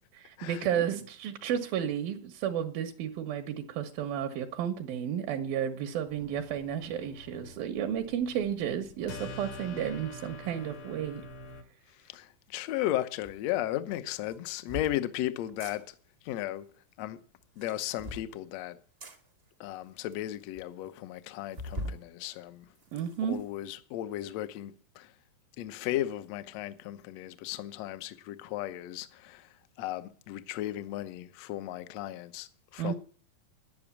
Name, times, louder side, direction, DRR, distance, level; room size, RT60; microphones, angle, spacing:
voice 1, 0.2-11.2 22.9-23.4 32.8-33.0, right 9 dB, 85° right, 2.9 m, -32 dB
sound 1, 6.1-11.6, left 2 dB, 60° left, 1.5 m, -46 dB
voice 2, 12.0-15.9 16.2-16.7 17.0-17.2 17.6-18.8 19.6-22.7 23.2-25.1 25.6-32.9, left 14 dB, 75° left, 1.6 m, -35 dB
sound 2, 13.2-13.4 14.2-15.0 15.5-15.8 17.4-18.3 19.0-19.2 19.8-19.9 20.1-20.2 20.5-20.6 21.5-22.0 22.5-23.4, equal, 65° right, 0.6 m, -41 dB
11.0 x 10.5 x 7.2 m
omnidirectional pair, 4.0 m